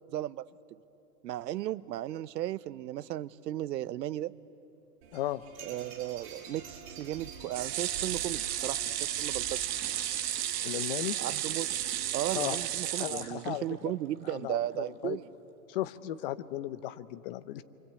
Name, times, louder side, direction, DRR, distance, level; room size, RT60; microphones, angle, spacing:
voice 1, 0.1-0.5 1.2-4.3 5.7-9.6 11.2-11.7 12.1-15.3, right 13 dB, 80° right, 16 dB, 0.9 m, -35 dB
sound 1, 5.0-12.8, right 6 dB, 45° right, 7.8 m, -47 dB
voice 2, 5.1-5.4 8.8-8.9 9.2-9.3 10.6-11.2 12.3-12.6 13.0-13.9 14.2-15.2 15.7-17.6, left 14 dB, 35° left, 13 dB, 0.7 m, -36 dB
sound 2, 7.5-13.8 14.3-14.4 14.7-14.8, right 12 dB, 20° right, 0.7 m, -33 dB
27.5 x 25.0 x 8.3 m, 2.9 s
supercardioid pair, 155°, 50 cm